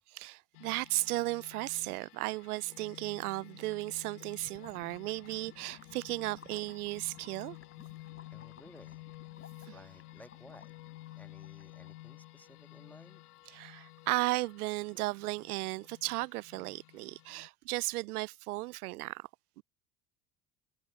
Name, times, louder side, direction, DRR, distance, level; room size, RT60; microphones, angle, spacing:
voice 1, 0.1-7.6 13.5-19.3 19.6-19.7, right 21 dB, 75° right, 0.6 m, -35 dB
sound 1, 0.5-17.5, left 18 dB, 80° left, 0.6 m, -52 dB
Gurgling / Liquid, 4.4-12.1, left 6 dB, 30° left, 3.6 m, -58 dB
voice 2, 8.3-9.1 9.7-10.7 11.1-13.2 17.4-17.5, left 1 dB, 5° left, 1.8 m, -56 dB
hypercardioid pair, 65°, 46 cm